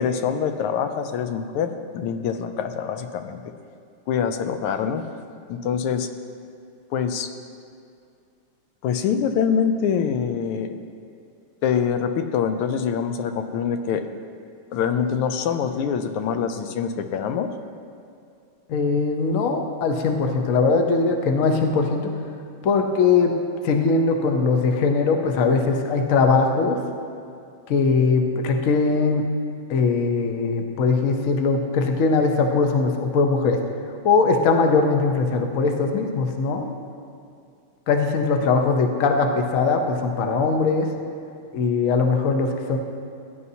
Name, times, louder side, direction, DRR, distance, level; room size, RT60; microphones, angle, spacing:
voice 1, 0.0-3.4 4.1-5.0 5.5-6.1 6.9-7.3 8.8-10.8 11.6-14.1 14.7-17.5 38.4-38.5, left 7 dB, 85° left, 7 dB, 1.5 m, -25 dB
voice 2, 18.7-22.1 22.6-23.3 23.6-26.8 27.7-29.2 29.7-33.6 34.0-36.7 37.9-40.9 41.5-42.8, left 4 dB, 60° left, 4 dB, 0.8 m, -20 dB
16.5 x 9.5 x 2.8 m, 2.4 s
omnidirectional pair, 2.4 m